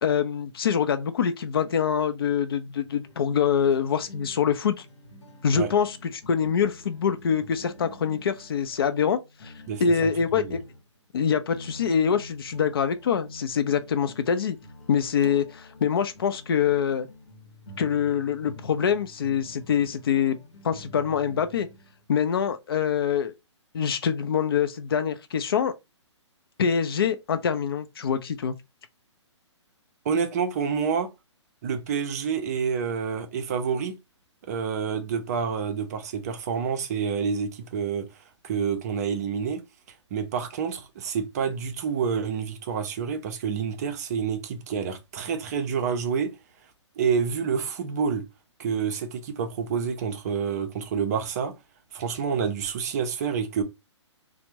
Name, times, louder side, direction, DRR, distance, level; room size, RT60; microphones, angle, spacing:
voice 1, 0.0-4.8 5.4-9.5 9.8-10.6 11.1-14.6 14.9-17.1 17.8-20.4 20.6-21.7 22.1-23.3 23.7-25.7 26.6-28.5, left 7 dB, 50° left, 0.5 m, -25 dB
sound 1, 3.0-11.0 11.5-22.3, left 1 dB, 70° left, 0.9 m, -48 dB
voice 2, 9.7-10.1 10.4-10.6 30.0-31.1 31.6-34.0 34.5-38.1 38.4-39.6 40.1-46.3 47.0-48.3 48.6-51.5 51.9-53.6, right 6 dB, 35° right, 0.5 m, -28 dB
3.3 x 2.1 x 2.9 m
figure-of-eight pair, 125°, 15 cm